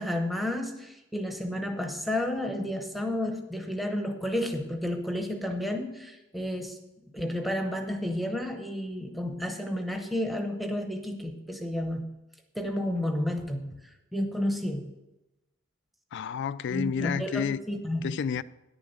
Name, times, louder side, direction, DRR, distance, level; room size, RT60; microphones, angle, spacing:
voice 1, 0.0-12.1 12.5-14.9 16.7-18.1, left 1 dB, ahead, 0.9 m, -31 dB
voice 2, 16.1-17.6 18.0-18.4, left 7 dB, 60° left, 0.3 m, -30 dB
10.0 x 7.0 x 6.5 m
head